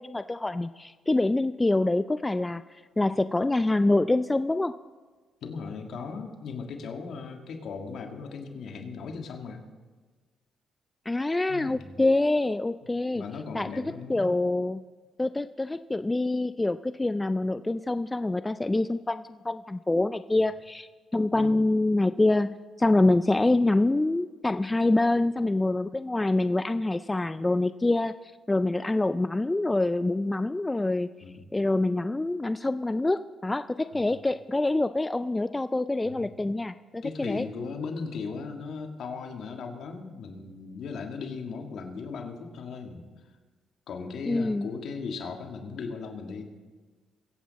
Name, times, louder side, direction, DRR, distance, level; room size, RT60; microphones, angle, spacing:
voice 1, 0.0-2.6 3.0-4.7 11.1-13.2 13.5-13.7 14.1-14.8 15.2-28.1 28.5-31.1 31.5-37.5 44.3-44.7, left 2 dB, 15° left, 12 dB, 0.3 m, -26 dB
voice 2, 5.4-9.6 11.5-11.9 13.1-14.4 21.4-21.6 31.2-31.4 33.9-34.2 36.0-36.3 37.0-43.0 43.9-46.4, left 5 dB, 70° left, 3 dB, 1.8 m, -37 dB
23.0 x 8.4 x 4.1 m, 1.4 s
cardioid pair, 90°, 0 cm